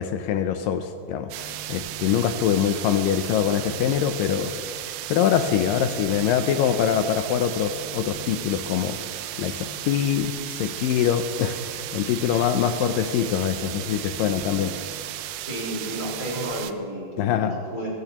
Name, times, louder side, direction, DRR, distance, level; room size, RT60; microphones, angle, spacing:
voice 1, 0.0-4.5 5.1-9.0 9.4-14.7 17.2-17.5, left 9 dB, 80° left, 8 dB, 2.0 m, -24 dB
sound 1, 1.3-16.7, right 13 dB, 80° right, 2.4 m, -35 dB
voice 2, 15.5-17.9, equal, 20° right, -5 dB, 4.8 m, -32 dB
23.0 x 15.0 x 3.0 m, 2.4 s
omnidirectional pair, 4.5 m